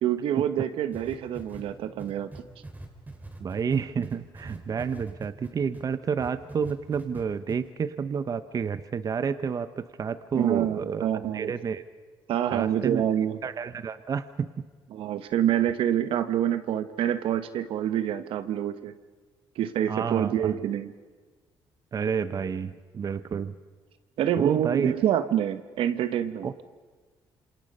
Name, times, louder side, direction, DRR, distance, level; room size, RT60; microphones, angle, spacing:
voice 1, 0.0-2.3 10.3-11.5 12.3-13.4 14.9-18.9 19.6-20.9 24.2-26.5, right 10 dB, 80° right, 11 dB, 1.1 m, -26 dB
sound 1, 0.9-5.8 6.2-7.2 7.5-7.6, right 2 dB, 20° right, 4.7 m, -42 dB
voice 2, 3.4-11.1 11.3-11.8 12.5-13.0 13.4-14.5 19.9-20.6 21.9-23.5 24.4-24.9 26.4-26.5, right 6 dB, 40° right, 13 dB, 0.8 m, -30 dB
27.5 x 27.0 x 5.4 m, 1.4 s
cardioid pair, 100°, 9 cm